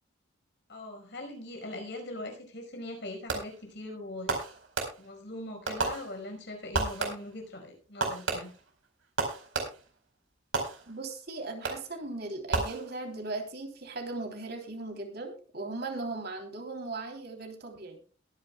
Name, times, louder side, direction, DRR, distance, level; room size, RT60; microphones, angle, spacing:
voice 1, 0.7-4.4 5.0-8.5, left 1 dB, 60° left, 3 dB, 5.1 m, -41 dB
Fireworks, 3.3-3.7 4.3-5.3 5.7-6.4 6.7-7.4 8.0-10.0 10.5-11.2 11.6-12.0 12.5-13.3, right 3 dB, 80° right, 4.5 m, -33 dB
voice 2, 10.9-18.0, right 2 dB, 55° right, 3 dB, 3.3 m, -38 dB
22.0 x 10.5 x 2.3 m, 0.37 s
head